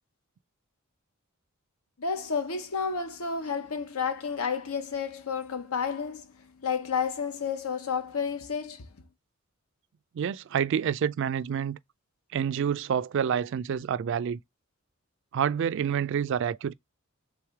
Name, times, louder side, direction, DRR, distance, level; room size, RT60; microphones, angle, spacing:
voice 1, 2.0-6.3 6.6-8.8, left 6 dB, 90° left, 0.8 m, -31 dB
voice 2, 10.1-11.8 12.3-14.4 15.3-16.7, right 8 dB, 60° right, 0.3 m, -28 dB
3.5 x 3.1 x 4.6 m
head